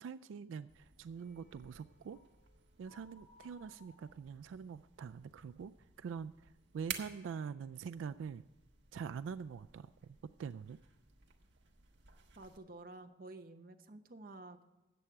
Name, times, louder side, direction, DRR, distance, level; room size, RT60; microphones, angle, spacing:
voice 1, 0.0-2.2 2.8-5.7 6.0-8.4 8.9-10.8, right 6 dB, 90° right, 13 dB, 0.3 m, -44 dB
sound 1, 0.7-12.6, right 7 dB, 65° right, 1.3 m, -54 dB
sound 2, 1.2-7.0 7.2-7.6 8.0-8.2, left 2 dB, 40° left, 3.9 m, -68 dB
voice 2, 12.4-14.6, right 2 dB, 45° right, 7 dB, 0.8 m, -51 dB
14.0 x 8.8 x 4.6 m, 1.1 s
head